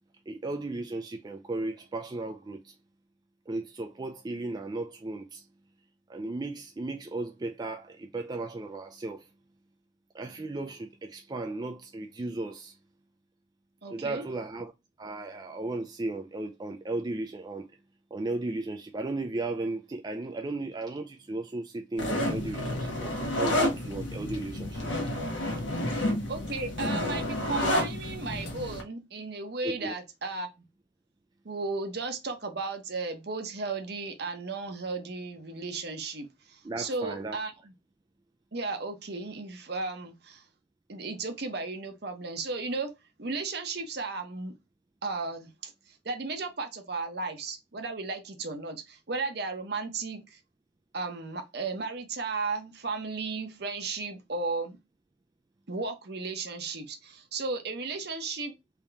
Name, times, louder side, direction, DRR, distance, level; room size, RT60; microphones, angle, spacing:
voice 1, 0.3-2.8 3.5-5.5 6.1-9.3 10.1-12.8 13.9-14.7 15.0-17.7 18.1-25.0 29.6-30.0 36.6-37.4, right 2 dB, 20° right, 0.3 m, -35 dB
voice 2, 13.8-14.3 26.3-30.5 31.4-37.7 38.5-40.4 40.9-42.9 43.2-44.5 45.0-50.4 50.9-54.8 55.7-58.5, right 3 dB, 55° right, 0.9 m, -35 dB
sound 1, 22.0-28.8, left 1 dB, 75° left, 1.1 m, -30 dB
3.5 x 2.9 x 3.4 m
head